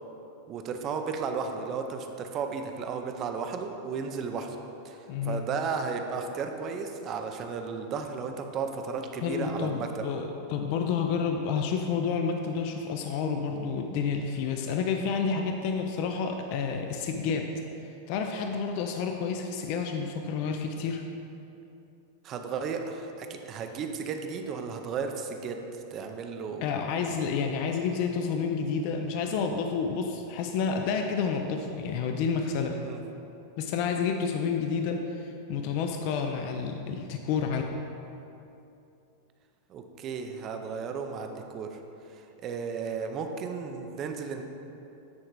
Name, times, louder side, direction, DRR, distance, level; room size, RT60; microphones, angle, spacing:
voice 1, 0.5-4.6 4.8-10.0 22.2-26.7 32.7-33.0 39.7-41.8 42.1-44.4, right 5 dB, 25° right, 5 dB, 0.5 m, -34 dB
voice 2, 5.1-5.4 9.2-17.5 17.8-21.0 26.6-32.8 33.6-37.6, left 5 dB, 40° left, 4 dB, 0.4 m, -30 dB
9.4 x 3.8 x 4.6 m, 2.8 s
supercardioid pair, 170°, 0 cm